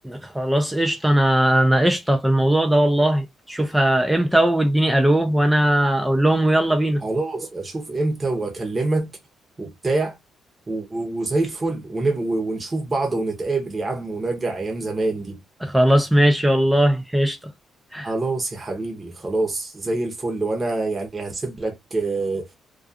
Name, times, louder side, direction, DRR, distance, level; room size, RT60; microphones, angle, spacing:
voice 1, 0.0-7.0 15.6-17.4 17.9-18.1, right 1 dB, 5° right, 0.4 m, -19 dB
voice 2, 7.0-9.1 9.6-10.2 10.7-15.4 18.0-22.4, right 2 dB, 25° right, 0.8 m, -25 dB
2.4 x 2.3 x 2.5 m
cardioid pair, 90°, 0 cm